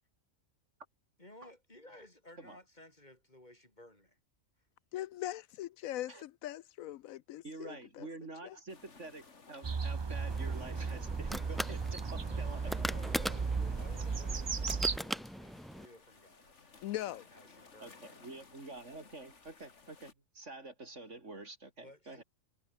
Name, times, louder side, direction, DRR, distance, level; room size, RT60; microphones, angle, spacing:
voice 1, 1.2-4.2 12.6-13.5 13.8-18.2 21.8-22.2, left 1 dB, 30° left, 5.4 m, -57 dB
voice 2, 4.9-8.1 8.4-8.6 16.8-17.2, left 13 dB, 80° left, 1.0 m, -41 dB
voice 3, 7.4-12.7 17.8-22.2, right 2 dB, 60° right, 4.3 m, -48 dB
sound 1, 8.7-20.1, left 4 dB, 55° left, 2.5 m, -59 dB
sound 2, 9.6-15.0, right 5 dB, 35° right, 0.4 m, -35 dB
sound 3, 10.3-15.9, equal, ahead, 1.1 m, -41 dB
omnidirectional pair, 1.4 m